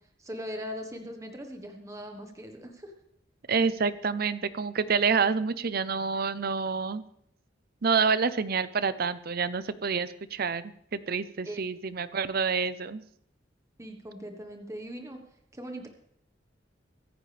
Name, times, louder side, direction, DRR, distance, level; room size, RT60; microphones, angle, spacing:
voice 1, 0.2-2.9 11.4-11.6 13.8-15.2 15.5-15.9, equal, 15° right, 4 dB, 1.3 m, -40 dB
voice 2, 3.5-7.0 7.8-13.0, right 5 dB, 55° right, 15 dB, 0.7 m, -28 dB
23.5 x 10.5 x 3.4 m, 0.72 s
head